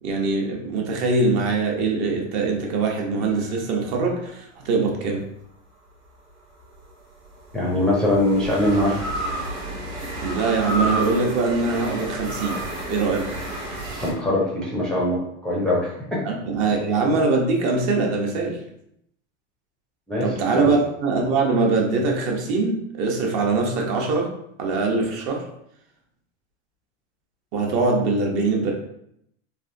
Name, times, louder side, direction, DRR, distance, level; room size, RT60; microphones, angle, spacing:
voice 1, 0.0-5.2 10.2-12.6 12.9-13.3 16.2-18.6 20.2-24.3 24.6-25.5 27.5-28.7, right 3 dB, 55° right, 1 dB, 0.8 m, -22 dB
sound 1, 3.2-4.7 6.6-14.1, right 1 dB, 85° right, 1.3 m, -31 dB
voice 2, 7.5-9.0 13.9-16.2 20.1-20.3 20.6-20.7, left 1 dB, ahead, -5 dB, 0.4 m, -22 dB
3.4 x 2.5 x 2.5 m, 0.74 s
supercardioid pair, 135°, 37 cm